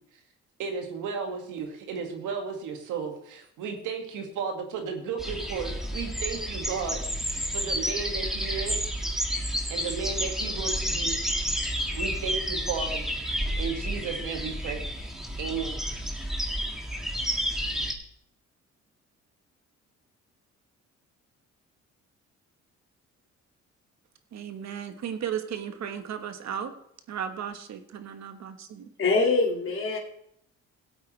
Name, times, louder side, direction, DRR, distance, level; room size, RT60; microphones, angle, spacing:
voice 1, 0.6-8.9 9.5-13.1 13.6-15.8, right 6 dB, 85° right, 3 dB, 2.1 m, -34 dB
sound 1, 5.2-17.9, equal, ahead, 1.8 m, -30 dB
voice 2, 24.3-26.7 27.1-28.8, right 8 dB, 60° right, 8 dB, 1.3 m, -35 dB
voice 3, 29.0-30.0, left 3 dB, 45° left, 0 dB, 2.3 m, -24 dB
17.0 x 8.3 x 3.3 m, 0.73 s
cardioid pair, 90°, 30 cm